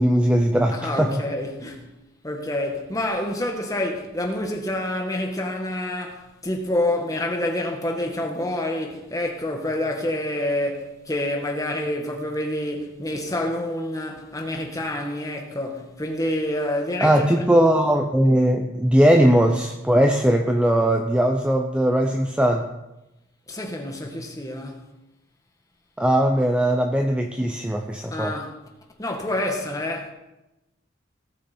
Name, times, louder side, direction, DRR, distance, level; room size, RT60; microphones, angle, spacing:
voice 1, 0.0-1.1 17.0-22.7 26.0-28.3, right 1 dB, 5° right, 0.6 m, -19 dB
voice 2, 0.7-1.9 2.2-17.4 23.5-24.9 28.1-28.5 29.0-30.1, left 1 dB, 15° left, 1.6 m, -27 dB
17.5 x 6.6 x 4.4 m
head